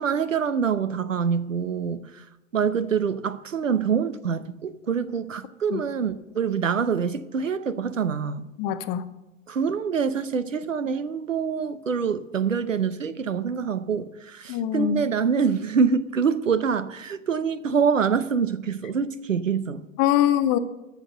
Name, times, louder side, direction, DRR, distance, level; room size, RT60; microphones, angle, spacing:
voice 1, 0.0-2.2 2.5-8.5 9.5-19.8, right 6 dB, 75° right, 0.9 m, -25 dB
voice 2, 8.6-9.1 14.5-15.0 20.0-20.6, left 11 dB, 25° left, 0.6 m, -23 dB
13.5 x 6.6 x 6.5 m
figure-of-eight pair, 105°, 39 cm